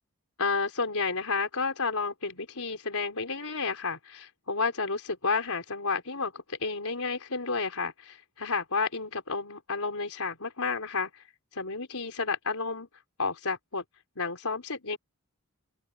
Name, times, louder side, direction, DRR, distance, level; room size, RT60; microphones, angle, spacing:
voice 1, 0.4-11.2 11.5-12.9 13.2-13.8 14.2-15.0, left 4 dB, 75° left, 4.5 m, -31 dB
head